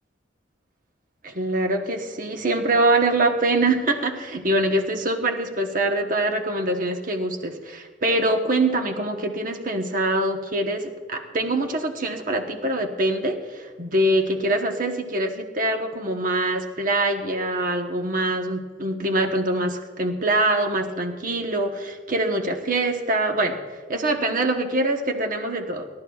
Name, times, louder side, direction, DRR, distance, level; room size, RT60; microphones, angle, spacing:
voice 1, 1.2-25.9, right 2 dB, 45° right, 4 dB, 1.1 m, -24 dB
29.0 x 12.5 x 2.4 m, 1.4 s
head